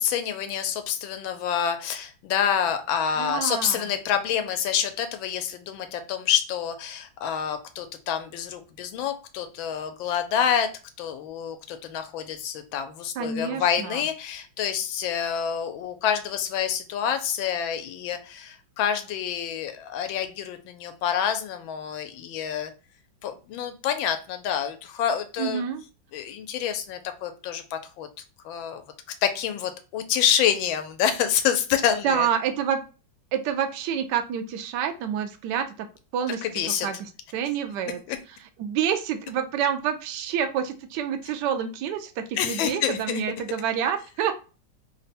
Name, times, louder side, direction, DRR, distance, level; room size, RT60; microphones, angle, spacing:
voice 1, 0.0-10.7 11.0-22.7 23.2-25.6 26.1-28.1 28.4-28.8 29.2-32.3 36.4-36.9 38.1-38.2 42.4-43.2, left 8 dB, 80° left, 8 dB, 1.4 m, -27 dB
voice 2, 3.2-3.9 13.2-14.0 25.4-25.8 32.0-32.8 33.3-35.9 36.1-38.0 38.6-44.3, right 8 dB, 75° right, 7 dB, 1.1 m, -28 dB
3.5 x 2.2 x 4.1 m, 0.34 s
omnidirectional pair, 2.2 m